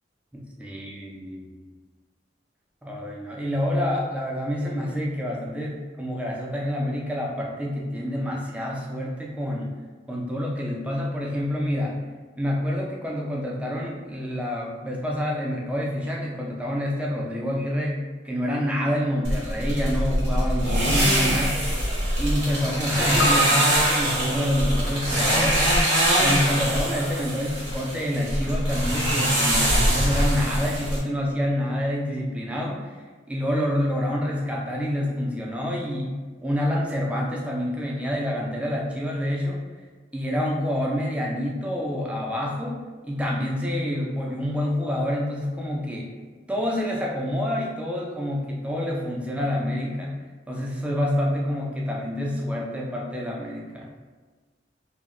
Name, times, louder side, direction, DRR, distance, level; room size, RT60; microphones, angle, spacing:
voice 1, 0.3-1.4 2.8-9.7 10.1-12.0 12.4-18.0 18.2-21.6 22.2-25.9 26.2-32.9 33.3-39.6 40.1-46.1 46.5-50.2 50.5-53.9, equal, 5° right, -2 dB, 0.3 m, -27 dB
sound 1, 19.2-31.0, equal, 90° right, 0.8 m, -23 dB
Piano, 23.2-27.7 28.0-28.1, right 1 dB, 80° left, 0.5 m, -32 dB
2.2 x 2.1 x 3.5 m, 1.4 s
head